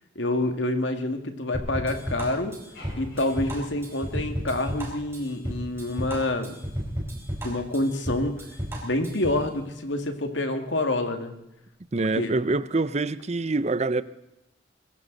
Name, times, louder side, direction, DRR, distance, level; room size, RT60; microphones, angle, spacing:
voice 1, 0.2-2.6 3.0-6.5 7.4-8.4 8.8-11.3 12.2-12.3, left 2 dB, 80° left, 2.2 m, -27 dB
sound 1, 1.5-9.5, equal, 15° right, 4.5 m, -33 dB
sound 2, 2.7-5.0, left 1 dB, 60° left, 5.1 m, -49 dB
voice 2, 11.9-14.0, right 3 dB, 35° right, 0.6 m, -25 dB
22.0 x 15.5 x 4.1 m
head